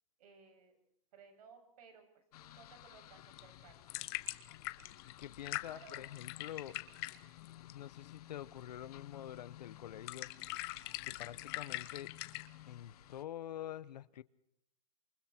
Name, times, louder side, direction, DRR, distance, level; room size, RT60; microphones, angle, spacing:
voice 1, 0.2-0.8 1.1-4.1 5.7-6.1, right 5 dB, 65° right, 6 dB, 7.4 m, -60 dB
sound 1, 2.3-13.2, left 13 dB, 70° left, 1.3 m, -56 dB
sound 2, 3.2-12.5, left 20 dB, 40° left, 1.1 m, -44 dB
voice 2, 5.0-6.8 7.7-10.3 11.0-12.1 12.7-14.2, left 11 dB, 90° left, 17 dB, 1.1 m, -46 dB
28.0 x 24.5 x 4.5 m, 0.72 s
supercardioid pair, 160°, 20 cm